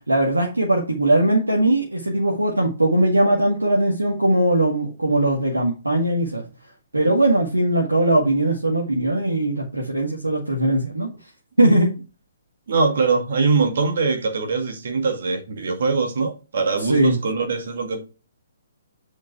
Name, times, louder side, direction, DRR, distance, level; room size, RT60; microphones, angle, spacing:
voice 1, 0.1-6.4 6.9-11.1 11.6-11.9 16.8-17.2, right 1 dB, 80° right, 1.9 m, -20 dB
voice 2, 12.7-18.0, right 4 dB, 55° right, 2.0 m, -22 dB
7.7 x 5.3 x 4.7 m
figure-of-eight pair, 125°, 0 cm